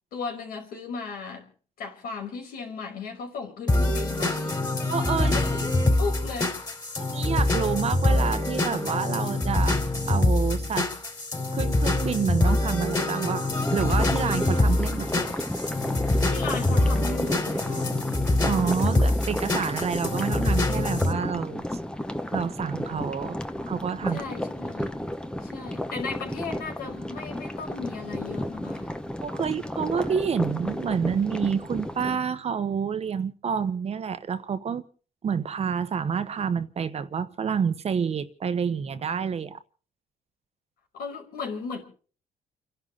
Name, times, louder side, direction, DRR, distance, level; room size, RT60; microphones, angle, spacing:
voice 1, 0.1-1.5 1.8-4.6 5.2-6.5 16.3-17.9 24.1-25.0 25.4-28.9 40.9-41.8, left 5 dB, 75° left, 5.3 m, -36 dB
sound 1, 3.7-21.1, left 2 dB, 25° left, 4.2 m, -25 dB
voice 2, 4.9-5.3 7.0-9.8 10.1-10.9 11.5-15.3 18.5-21.6 22.3-24.2 29.2-34.8 35.2-39.6, right 6 dB, 45° right, 1.2 m, -28 dB
sound 2, 13.5-32.2, left 1 dB, 5° left, 1.1 m, -33 dB
30.0 x 11.5 x 4.1 m
cardioid pair, 120°, 15 cm